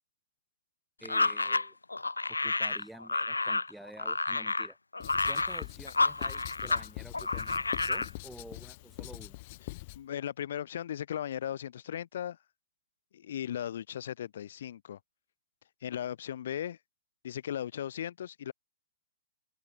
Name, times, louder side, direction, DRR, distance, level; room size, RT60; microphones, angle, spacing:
sound 1, 1.0-6.9 7.1-8.1, left 3 dB, 85° left, 1.0 m, -30 dB
voice 1, 1.0-1.8 2.3-4.8 5.3-9.4, right 1 dB, 5° right, 3.2 m, -50 dB
Writing, 5.0-10.0, left 22 dB, 40° left, 0.6 m, -43 dB
voice 2, 9.9-12.4 13.1-15.0 15.8-16.8 17.2-18.5, left 10 dB, 60° left, 1.4 m, -37 dB
open air
figure-of-eight pair, 115°, 0 cm